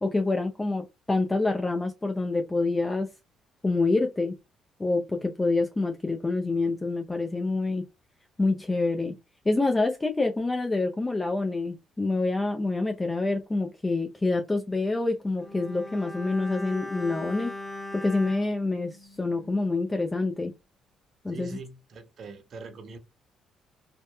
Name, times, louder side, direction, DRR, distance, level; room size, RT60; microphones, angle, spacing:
voice 1, 0.0-3.1 3.6-4.3 4.8-7.9 8.4-9.2 9.5-17.5 17.9-20.5 21.2-21.6, left 3 dB, 20° left, 0.4 m, -27 dB
Bowed string instrument, 15.4-19.8 20.1-20.2, left 1 dB, ahead, 1.1 m, -40 dB
voice 2, 21.3-23.0, right 4 dB, 60° right, 0.6 m, -42 dB
2.7 x 2.1 x 2.2 m
hypercardioid pair, 55°, 0 cm